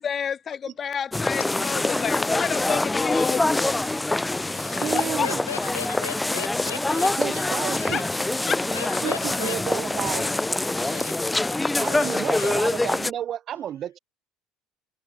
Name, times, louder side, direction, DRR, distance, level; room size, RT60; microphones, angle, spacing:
voice 1, 0.0-3.9 5.2-5.3 7.9-8.0 8.5-8.6, left 7 dB, 35° left, 1.7 m, -29 dB
sound 1, 1.1-13.1, left 2 dB, 10° left, 0.8 m, -25 dB
voice 2, 4.2-8.0 8.7-9.6 10.0-10.4 10.7-11.2 11.6-12.5, left 8 dB, 80° left, 3.1 m, -38 dB
voice 3, 4.8-5.4 7.2-8.1 9.0-10.3 11.8-14.0, right 10 dB, 45° right, 2.3 m, -31 dB
figure-of-eight pair, 65°, 0 cm